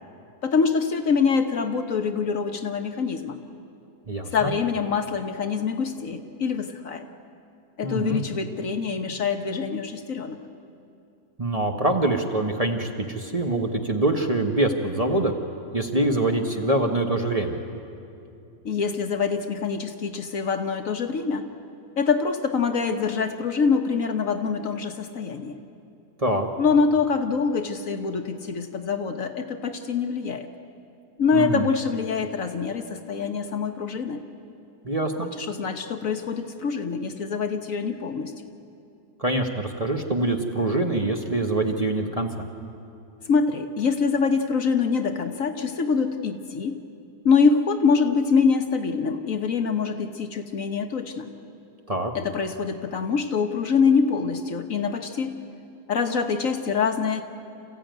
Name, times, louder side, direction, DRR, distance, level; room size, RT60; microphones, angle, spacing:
voice 1, 0.4-3.4 4.3-7.1 7.8-10.4 18.6-21.5 22.0-25.6 26.6-30.5 31.2-34.2 35.4-38.3 43.3-46.8 47.2-51.3 52.1-55.3 55.9-57.2, left 5 dB, 55° left, 6 dB, 1.4 m, -25 dB
voice 2, 4.1-4.5 7.8-8.2 11.4-15.3 15.7-17.6 26.2-26.5 31.3-31.7 34.8-35.3 39.2-42.3 51.9-52.1, right 2 dB, 25° right, 2 dB, 1.2 m, -24 dB
28.0 x 15.0 x 9.2 m, 2.6 s
omnidirectional pair, 1.7 m